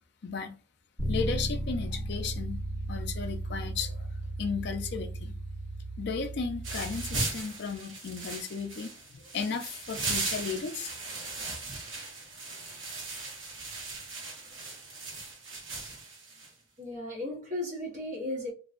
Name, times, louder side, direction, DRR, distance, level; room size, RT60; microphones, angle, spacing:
voice 1, 0.2-0.6 1.1-4.1 4.4-5.4 6.0-10.9 11.2-11.3, left 5 dB, 55° left, 0.4 m, -35 dB
Bass guitar, 1.0-7.2, right 1 dB, 20° left, 1.0 m, -35 dB
sound 1, 6.6-16.5, right 3 dB, 70° right, 0.9 m, -38 dB
voice 2, 16.8-18.5, left 1 dB, 35° right, 0.9 m, -35 dB
2.6 x 2.2 x 2.4 m
head